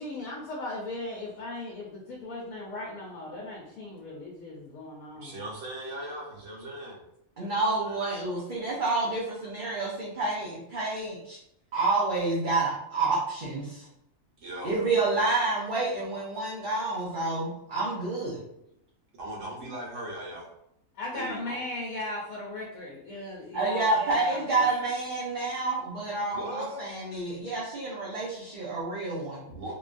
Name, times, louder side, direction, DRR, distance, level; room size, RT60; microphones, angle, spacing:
voice 1, 0.0-5.4 21.0-24.6, left 2 dB, 85° left, -3 dB, 1.1 m, -37 dB
voice 2, 5.1-7.0 7.4-7.5 7.8-8.0 14.4-14.7 19.2-20.5 21.1-21.6 26.3-26.8 29.5-29.7, right 1 dB, 70° right, -4 dB, 1.3 m, -38 dB
voice 3, 7.4-11.4 11.7-13.9 14.6-18.4 23.5-29.4, right 3 dB, 50° right, -7 dB, 0.6 m, -29 dB
3.0 x 2.3 x 2.5 m, 0.78 s
omnidirectional pair, 1.4 m